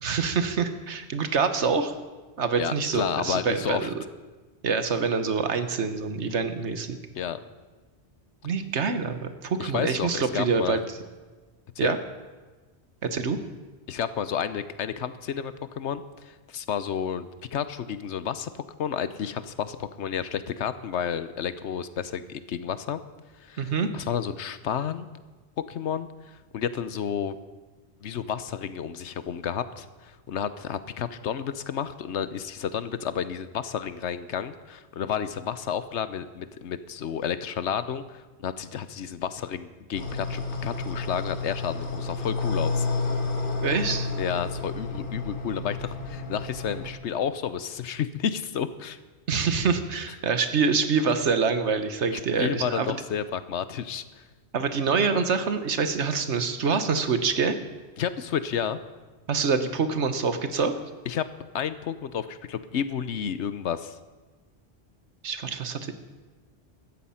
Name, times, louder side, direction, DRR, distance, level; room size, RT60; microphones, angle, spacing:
voice 1, 0.0-1.9 2.4-3.9 4.6-7.0 8.4-10.8 11.8-12.0 13.0-13.4 23.6-23.9 43.6-44.1 49.3-52.9 54.5-57.6 59.3-60.7 65.2-65.9, right 5 dB, 85° right, 9 dB, 1.5 m, -25 dB
voice 2, 2.6-3.9 7.1-7.4 9.6-10.8 11.8-12.0 13.9-23.0 23.4-25.1 25.7-27.4 28.0-42.9 44.2-49.0 52.1-54.0 58.0-58.8 61.1-61.2 61.5-64.0, left 8 dB, 85° left, 13 dB, 1.1 m, -31 dB
sound 1, 39.9-46.9, left 3 dB, 50° left, 1.6 m, -30 dB
16.0 x 13.0 x 5.7 m, 1.3 s
omnidirectional pair, 1.1 m